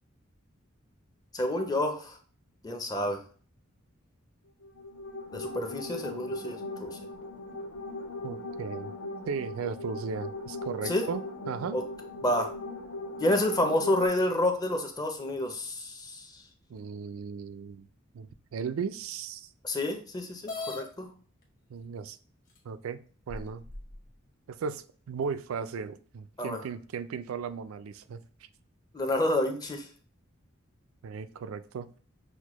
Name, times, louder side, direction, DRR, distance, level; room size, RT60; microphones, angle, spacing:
voice 1, 1.3-2.2 2.6-3.2 5.3-7.0 10.8-11.0 11.7-11.8 12.2-12.5 13.2-16.3 19.6-21.1 26.4-26.6 28.9-29.9, left 1 dB, 20° left, 0.5 m, -29 dB
sound 1, 4.6-14.0, left 2 dB, 85° left, 0.8 m, -39 dB
voice 2, 8.2-8.9 9.3-11.8 16.7-17.8 18.1-19.5 21.7-22.2 22.6-23.0 23.3-23.6 24.5-28.2 31.0-31.9, right 6 dB, 80° right, 0.3 m, -36 dB
sound 2, 20.5-20.8 21.8-21.9 22.6-22.7 23.3-24.0, left 3 dB, 40° left, 1.0 m, -38 dB
6.2 x 2.1 x 3.0 m
head